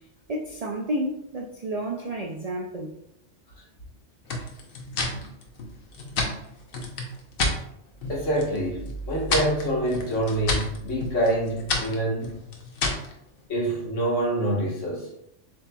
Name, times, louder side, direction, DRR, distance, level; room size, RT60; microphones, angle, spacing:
voice 1, 0.3-2.9, right 1 dB, 80° right, 1 dB, 0.3 m, -31 dB
sound 1, 4.3-7.6 8.0-8.6 8.9-13.1, left 2 dB, 55° left, 0.9 m, -30 dB
voice 2, 8.1-12.4 13.5-15.1, right 1 dB, 80° left, -3 dB, 1.6 m, -26 dB
7.4 x 2.9 x 2.2 m, 0.78 s
omnidirectional pair, 1.3 m